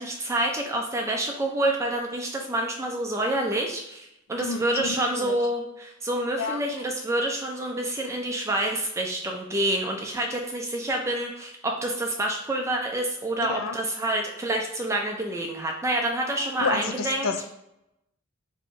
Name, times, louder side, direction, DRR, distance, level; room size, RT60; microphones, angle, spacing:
voice 1, 0.0-17.3, right 1 dB, 15° right, 1 dB, 0.4 m, -28 dB
voice 2, 4.4-4.8 5.1-5.4 6.4-6.6 13.5-13.8 16.6-17.4, left 4 dB, 75° left, 7 dB, 0.4 m, -29 dB
2.7 x 2.7 x 4.2 m, 0.84 s
head